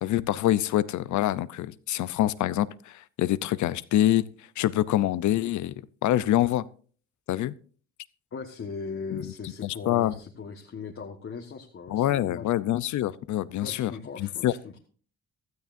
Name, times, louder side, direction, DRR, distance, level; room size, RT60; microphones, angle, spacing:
voice 1, 0.0-4.3 4.6-5.7 6.0-6.7 7.3-7.5 9.6-10.1 11.9-13.9 14.2-14.5, left 13 dB, 75° left, 0.7 m, -25 dB
voice 2, 8.3-12.5 13.6-14.8, left 5 dB, 45° left, 1.5 m, -39 dB
16.0 x 12.5 x 2.6 m
cardioid pair, 90°, 30 cm